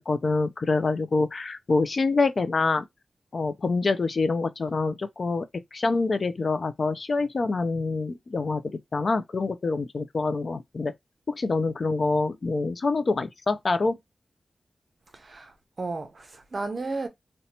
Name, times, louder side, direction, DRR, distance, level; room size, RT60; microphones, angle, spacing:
voice 1, 0.0-2.9 3.3-5.5 5.7-10.9 11.3-14.0, left 3 dB, 40° left, 0.3 m, -26 dB
voice 2, 15.1-17.1, right 3 dB, 35° right, 0.6 m, -34 dB
2.7 x 2.2 x 4.0 m
wide cardioid pair, 180°, 0 cm